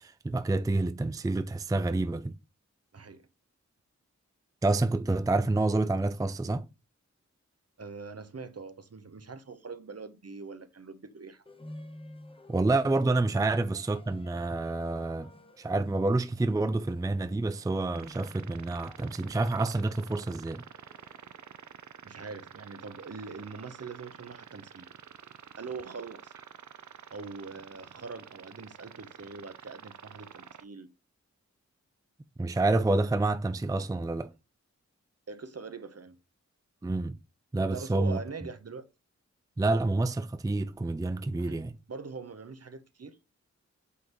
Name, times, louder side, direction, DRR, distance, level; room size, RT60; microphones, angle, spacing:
voice 1, 0.0-2.3 4.6-6.6 12.5-15.3 15.6-20.6 32.4-34.3 36.8-37.2 37.5-38.2 39.6-41.8, right 2 dB, 10° right, 0.4 m, -28 dB
voice 2, 2.9-3.3 7.8-11.4 22.0-24.9 25.6-26.3 27.1-30.9 35.3-36.2 37.7-38.9 41.4-43.2, right 4 dB, 55° right, 0.9 m, -43 dB
sound 1, 11.5-21.7, left 1 dB, 20° left, 0.9 m, -53 dB
sound 2, 17.9-30.6, right 7 dB, 75° right, 0.6 m, -49 dB
8.3 x 3.9 x 3.1 m
wide cardioid pair, 65°, 29 cm